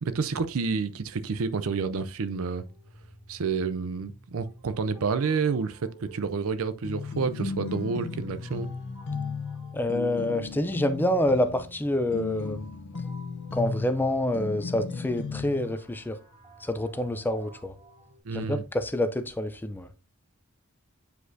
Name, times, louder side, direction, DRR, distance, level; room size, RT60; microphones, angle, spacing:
voice 1, 0.0-2.6 3.3-8.7 18.2-18.6, right 5 dB, 65° right, 0.5 m, -29 dB
sound 1, 2.5-18.2, right 1 dB, 15° right, 2.1 m, -52 dB
sound 2, 6.8-15.7, left 4 dB, 55° left, 0.8 m, -35 dB
voice 2, 9.7-12.7 13.5-16.2 16.6-17.7 18.3-19.9, left 1 dB, 10° left, 0.5 m, -27 dB
8.1 x 5.0 x 2.6 m
head